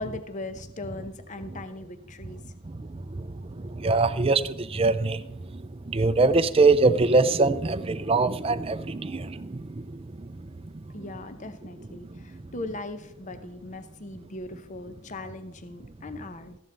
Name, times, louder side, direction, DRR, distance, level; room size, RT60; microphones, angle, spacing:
voice 1, 0.0-2.4 10.9-16.6, left 2 dB, 35° left, 10 dB, 0.7 m, -39 dB
voice 2, 2.7-10.1, right 3 dB, 25° right, 11 dB, 0.5 m, -24 dB
14.0 x 11.5 x 3.4 m, 0.82 s
head